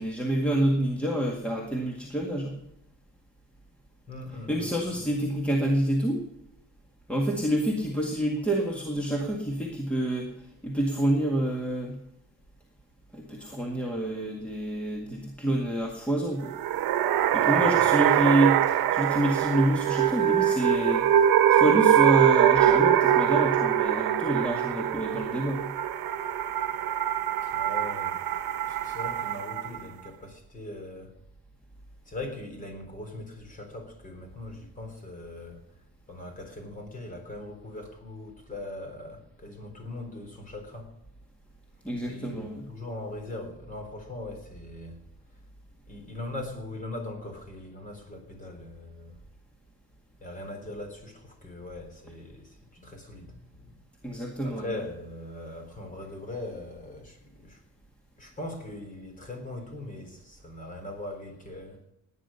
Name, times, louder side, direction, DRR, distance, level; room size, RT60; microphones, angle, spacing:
voice 1, 0.0-2.5 4.5-6.2 7.1-10.3 10.6-12.0 13.1-16.5 17.3-21.1 21.5-25.7 41.8-42.6 54.0-54.7, right 1 dB, 5° left, 0 dB, 1.9 m, -27 dB
voice 2, 4.1-5.1 17.5-18.1 27.4-31.2 32.1-35.8 36.1-40.9 42.1-45.0 45.9-49.2 50.2-53.8 54.1-57.6 58.2-61.8, left 2 dB, 20° left, 5 dB, 3.7 m, -40 dB
sound 1, 16.4-29.8, right 10 dB, 85° right, 1.2 m, -23 dB
18.0 x 9.9 x 5.7 m, 0.82 s
cardioid pair, 145°, 35 cm